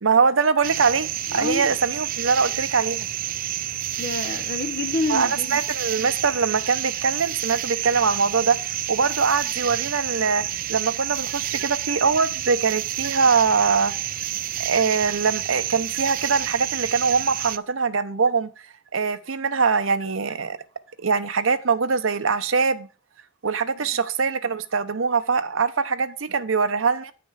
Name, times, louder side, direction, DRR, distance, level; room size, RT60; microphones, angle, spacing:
voice 1, 0.0-3.1 5.1-14.0 14.6-18.5 18.9-20.6 21.0-22.9 23.4-27.1, right 5 dB, 70° right, 0.8 m, -23 dB
sound 1, 0.6-17.6, right 12 dB, 45° right, 0.4 m, -29 dB
voice 2, 1.3-1.7 4.0-5.6, left 3 dB, 50° left, 1.0 m, -28 dB
9.2 x 6.1 x 4.7 m
head